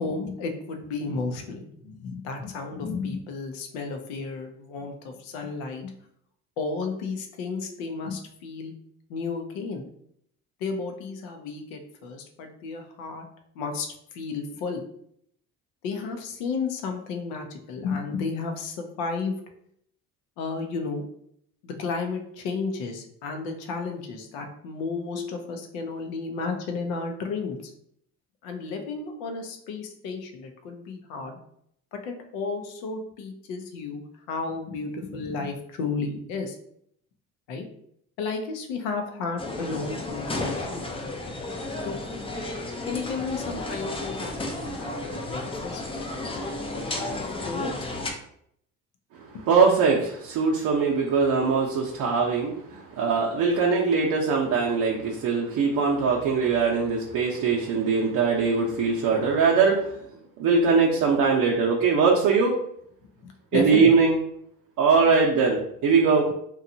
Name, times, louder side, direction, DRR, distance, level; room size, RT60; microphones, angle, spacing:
voice 1, 0.0-5.9 6.6-8.7 9.1-9.9 10.6-13.2 13.5-14.8 15.8-19.3 20.4-21.1 21.6-27.7 28.4-31.4 31.9-36.6 37.5-37.6 38.2-41.0 41.8-42.0 42.9-47.9 63.2-63.9, left 4 dB, 80° left, 5 dB, 0.6 m, -33 dB
sound 1, 39.4-48.1, left 2 dB, 15° left, 0.5 m, -33 dB
voice 2, 49.1-60.0 60.4-62.5 63.5-64.2 64.8-66.3, right 5 dB, 55° right, -1 dB, 0.6 m, -21 dB
2.8 x 2.3 x 2.6 m, 0.70 s
supercardioid pair, 70°, 37 cm